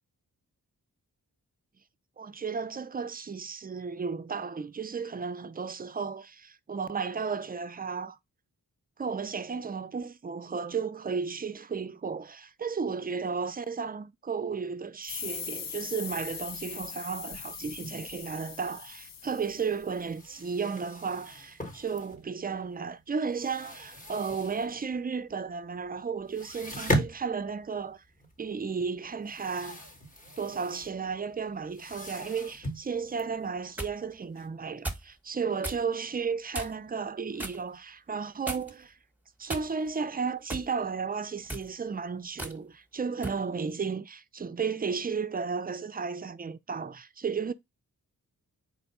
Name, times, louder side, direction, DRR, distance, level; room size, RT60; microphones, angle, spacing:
voice 1, 2.2-8.2 9.0-28.0 28.4-29.8 30.4-38.9 39.4-47.5, right 5 dB, 25° right, 0.4 m, -34 dB
sound 1, 15.0-20.3, left 7 dB, 65° left, 0.6 m, -41 dB
sound 2, 19.2-19.3 19.6-19.7 19.9-22.6 22.9-25.0 25.3-25.4 25.7-25.9 26.2-34.5, equal, 20° left, 1.0 m, -37 dB
sound 3, 33.4-34.0 34.8-35.1 35.6-35.8 36.5-36.9 37.4-37.6 38.5-38.9 39.5-40.0 40.5-40.7 41.4-41.7 42.4-42.6 43.2-43.4, right 1 dB, 5° right, 1.0 m, -37 dB
4.3 x 2.3 x 4.0 m
cardioid pair, 45°, 37 cm